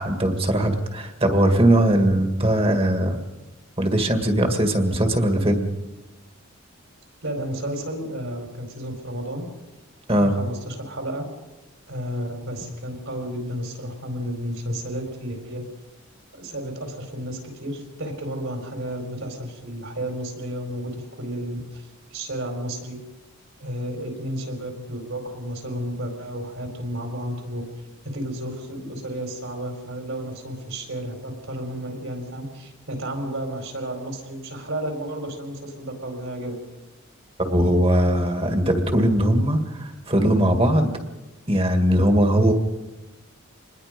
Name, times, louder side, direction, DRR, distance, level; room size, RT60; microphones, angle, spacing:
voice 1, 0.0-3.2 3.8-5.7 10.1-10.4 37.4-40.9 41.5-42.5, right 1 dB, 25° right, 5 dB, 2.0 m, -20 dB
voice 2, 7.2-9.5 10.2-11.2 11.9-15.6 16.4-23.0 23.6-27.6 28.1-36.6, equal, 65° right, 4 dB, 4.7 m, -32 dB
26.5 x 20.5 x 5.2 m, 1.1 s
head